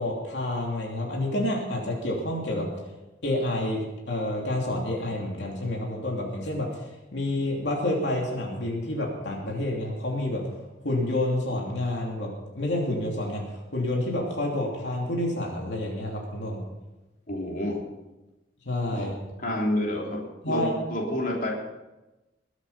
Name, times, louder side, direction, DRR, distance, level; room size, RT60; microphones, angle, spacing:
voice 1, 0.0-2.7 3.2-6.7 7.1-10.4 10.8-12.3 12.5-16.6 18.6-19.1 20.4-20.7, left 1 dB, 85° left, -2 dB, 3.0 m, -28 dB
voice 2, 17.3-17.8 18.9-19.1 19.4-20.2 20.5-21.5, left 1 dB, 50° left, -2 dB, 3.6 m, -28 dB
21.5 x 8.2 x 5.6 m, 1.0 s
head